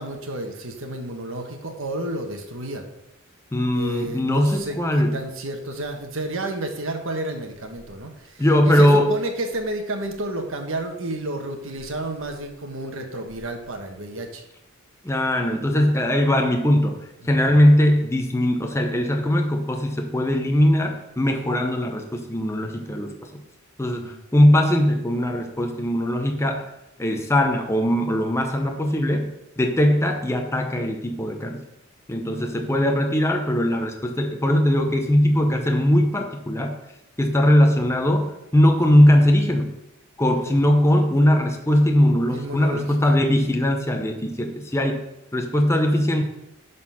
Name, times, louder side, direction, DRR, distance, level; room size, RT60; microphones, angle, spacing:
voice 1, 0.0-2.8 3.7-14.4 17.2-17.5 23.9-24.2 32.3-32.7 40.3-40.7 42.3-43.2, right 1 dB, 70° right, 4 dB, 1.4 m, -31 dB
voice 2, 3.5-5.2 8.4-9.1 15.0-23.1 23.8-26.6 27.0-31.6 32.1-36.7 37.2-39.7 40.2-45.0 45.3-46.2, left 1 dB, 15° left, 3 dB, 0.8 m, -20 dB
11.0 x 4.2 x 5.7 m, 0.88 s
head